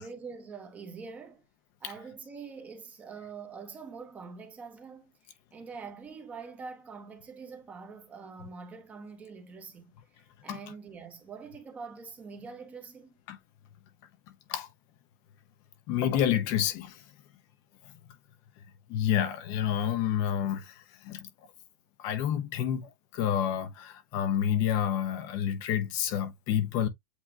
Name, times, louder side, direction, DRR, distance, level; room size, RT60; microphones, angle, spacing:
voice 1, 0.0-1.4 1.8-13.2, right 5 dB, 15° right, 0.8 m, -45 dB
voice 2, 15.9-17.0 18.9-21.3 22.0-26.9, left 10 dB, 35° left, 0.6 m, -29 dB
8.1 x 2.7 x 2.4 m
supercardioid pair, 160°, 11 cm